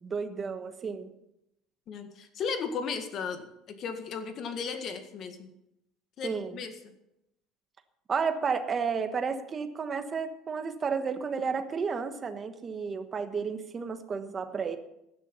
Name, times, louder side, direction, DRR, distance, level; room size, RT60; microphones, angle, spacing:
voice 1, 0.0-1.1 6.2-6.6 8.1-14.8, right 5 dB, 20° right, 8 dB, 1.2 m, -32 dB
voice 2, 1.9-5.5 6.2-6.7, left 5 dB, 35° left, 7 dB, 1.8 m, -35 dB
15.5 x 11.0 x 5.5 m, 0.83 s
cardioid pair, 165°, 0 cm